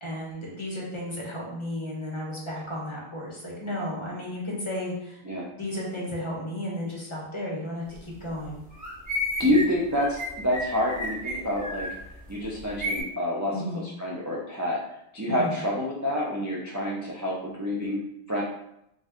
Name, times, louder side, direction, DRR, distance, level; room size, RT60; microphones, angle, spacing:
voice 1, 0.0-5.2 5.6-8.6 13.5-13.8 15.3-15.5, left 1 dB, 30° left, -4 dB, 1.0 m, -33 dB
sound 1, 7.9-8.0 8.3-13.0, left 1 dB, 10° right, 1.3 m, -33 dB
voice 2, 9.4-11.9 12.3-13.5 14.0-14.8 15.1-18.0 18.3-18.4, left 1 dB, 25° right, -5 dB, 0.4 m, -27 dB
3.9 x 2.6 x 3.5 m, 0.78 s
omnidirectional pair, 1.1 m